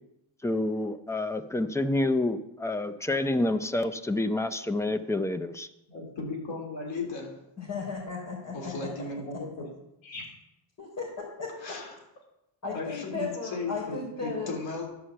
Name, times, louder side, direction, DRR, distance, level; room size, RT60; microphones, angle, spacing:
voice 1, 0.4-5.7, left 2 dB, 5° left, 10 dB, 0.4 m, -28 dB
voice 2, 5.9-7.3 8.5-9.7 10.0-10.3 11.6-11.9 12.7-14.9, left 3 dB, 80° left, 0 dB, 3.4 m, -36 dB
voice 3, 7.6-8.9 9.3-9.4 10.8-11.1 11.4-11.5 12.6-14.5, left 4 dB, 40° left, -6 dB, 3.8 m, -35 dB
11.5 x 5.6 x 7.7 m, 0.87 s
cardioid pair, 165°, 45 cm